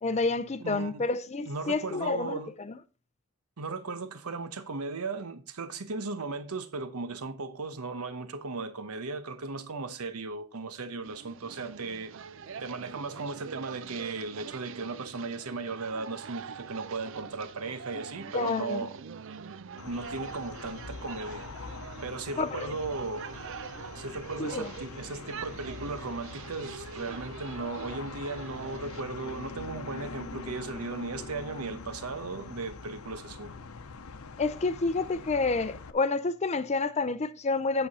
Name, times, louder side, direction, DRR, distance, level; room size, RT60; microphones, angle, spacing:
voice 1, 0.0-2.4 18.3-18.9 22.4-22.7 24.4-24.7 34.4-37.9, left 3 dB, 30° left, 0.5 m, -29 dB
voice 2, 0.6-1.0 1.5-2.5 3.6-12.1 12.6-19.0 19.9-21.5 22.0-23.2 23.9-33.5, right 3 dB, 85° right, 1.0 m, -36 dB
sound 1, 11.0-29.0, right 6 dB, 60° right, 0.5 m, -44 dB
sound 2, 19.8-35.9, left 4 dB, 80° left, 0.8 m, -43 dB
9.0 x 6.8 x 4.1 m
head